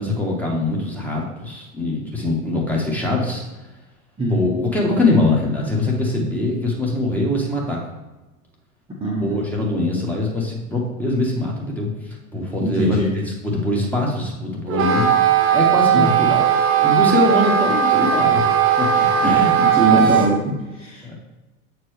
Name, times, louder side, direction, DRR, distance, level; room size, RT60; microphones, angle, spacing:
voice 1, 0.0-3.4 4.3-7.8 9.2-11.9 12.3-15.1 15.5-16.5 16.8-18.4 18.8-19.6 19.9-20.1 21.0-21.2, left 2 dB, 5° left, -3 dB, 1.5 m, -22 dB
voice 2, 9.0-9.4 12.6-13.1 15.9-16.1 18.9-21.0, right 1 dB, 15° right, -5 dB, 1.2 m, -22 dB
Wind instrument woodwind instrument, 14.7-20.3, right 8 dB, 30° right, 0.8 m, -17 dB
7.7 x 4.5 x 3.3 m, 1.1 s
figure-of-eight pair, 85°, 44 cm